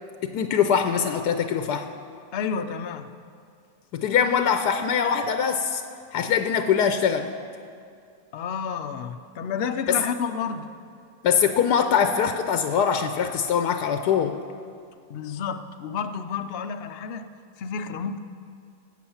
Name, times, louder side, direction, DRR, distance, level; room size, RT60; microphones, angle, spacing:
voice 1, 0.2-1.9 3.9-5.8 6.1-7.3 9.9-10.0 11.2-14.4, left 7 dB, 85° left, 8 dB, 1.2 m, -23 dB
voice 2, 2.3-3.1 8.3-10.7 15.1-17.3 17.6-18.2, left 6 dB, 65° left, 9 dB, 0.6 m, -30 dB
17.5 x 8.4 x 7.1 m, 2.3 s
omnidirectional pair, 1.7 m